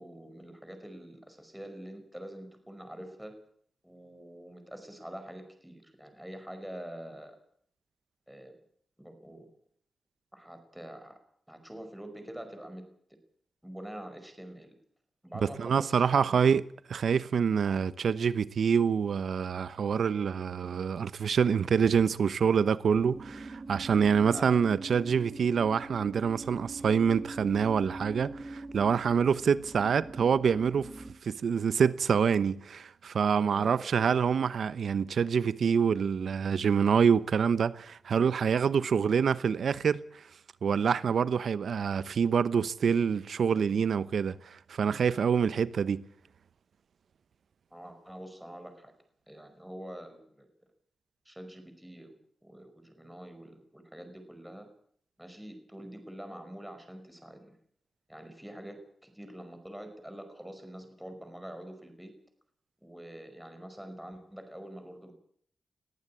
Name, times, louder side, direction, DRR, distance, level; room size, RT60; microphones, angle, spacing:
voice 1, 0.0-3.3 3.8-7.4 8.3-8.5 9.0-9.5 10.3-11.2 11.5-12.8 13.6-14.7 15.2-16.4 24.2-24.6 33.5-34.0 47.7-48.9 49.3-50.5 51.3-52.1 52.4-54.7 55.2-57.6 58.1-62.1 62.8-65.1, right 1 dB, 5° right, 5.3 m, -45 dB
voice 2, 15.6-16.6 16.9-30.9 31.2-40.2 40.6-46.0, right 6 dB, 75° right, 0.9 m, -26 dB
sound 1, 22.9-31.1, right 2 dB, 35° right, 2.7 m, -43 dB
21.0 x 14.5 x 8.6 m
cardioid pair, 80°, 0 cm